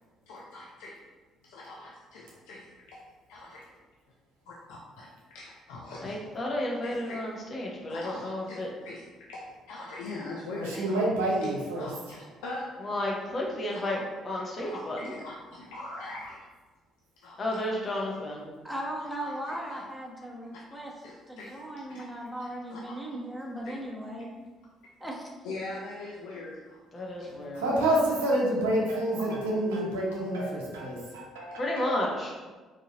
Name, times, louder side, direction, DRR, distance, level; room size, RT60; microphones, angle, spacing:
voice 1, 0.3-1.0 1.4-3.6 4.5-6.2 6.8-7.3 7.9-11.0 11.8-13.0 13.7-14.0 14.6-16.4 17.2-17.4 19.0-19.8 20.5-20.6 21.0-22.0 22.4-22.9 23.7-23.8 25.4-27.3 27.5-27.7 28.7-28.8 29.2-29.3 30.1-30.2 31.5-31.6, left 2 dB, 80° left, -4 dB, 0.5 m, -42 dB
voice 2, 6.0-8.7 12.8-14.0 14.2-15.1 17.4-18.5 26.9-27.7 31.6-32.3, left 1 dB, 45° left, -2 dB, 1.0 m, -32 dB
voice 3, 10.5-11.9 27.5-32.0, right 1 dB, 90° right, -4 dB, 0.8 m, -28 dB
voice 4, 18.6-20.9 21.3-24.3 25.0-25.3, right 1 dB, ahead, -2 dB, 0.9 m, -37 dB
4.1 x 2.6 x 2.9 m, 1.3 s
hypercardioid pair, 55°, 0 cm